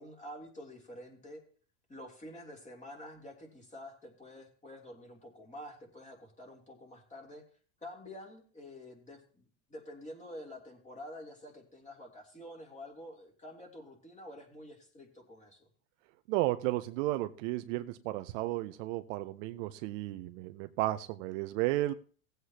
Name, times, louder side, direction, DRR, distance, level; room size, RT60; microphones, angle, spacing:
voice 1, 0.0-1.4 1.9-7.4 7.8-15.7, left 1 dB, 15° left, 0 dB, 3.1 m, -48 dB
voice 2, 16.3-21.9, right 17 dB, 55° right, 9 dB, 0.7 m, -33 dB
18.0 x 8.0 x 2.9 m, 0.43 s
supercardioid pair, 125°, 45 cm